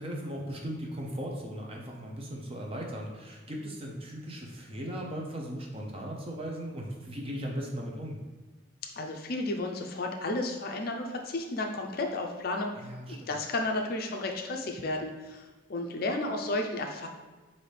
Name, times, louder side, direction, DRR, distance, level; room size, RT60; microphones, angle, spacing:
voice 1, 0.0-8.2 12.8-13.3, equal, 30° right, -1 dB, 0.6 m, -38 dB
voice 2, 9.0-12.7 13.1-15.4 15.7-17.1, left 2 dB, 45° left, 3 dB, 0.4 m, -32 dB
5.7 x 2.7 x 3.3 m, 1.3 s
head